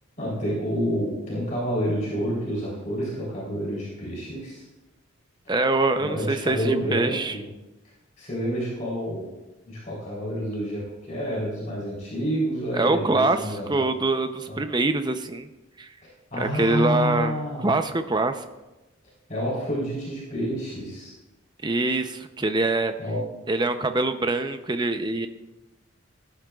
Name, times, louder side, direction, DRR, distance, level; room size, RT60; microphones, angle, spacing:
voice 1, 0.2-4.6 6.0-7.5 8.2-9.2 9.6-13.8 14.5-14.6 16.3-17.7 19.3-21.1 23.0-23.2, equal, 40° left, -6 dB, 3.5 m, -29 dB
voice 2, 5.5-7.4 12.7-15.5 15.8-15.9 16.4-18.4 21.6-22.9 23.5-25.3, right 2 dB, 20° right, 8 dB, 0.6 m, -24 dB
17.5 x 11.5 x 2.4 m, 1.0 s
head